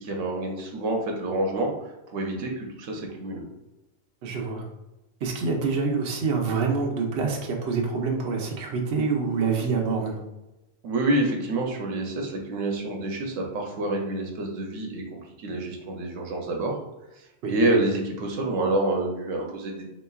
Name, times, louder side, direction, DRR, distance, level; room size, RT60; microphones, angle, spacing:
voice 1, 0.0-3.5 10.8-16.7 17.5-19.8, right 2 dB, 80° right, 1 dB, 1.1 m, -27 dB
voice 2, 4.2-4.6 5.2-10.2 17.4-17.8, right 4 dB, 60° right, 0 dB, 0.9 m, -26 dB
4.1 x 3.9 x 2.3 m, 0.97 s
omnidirectional pair, 1.3 m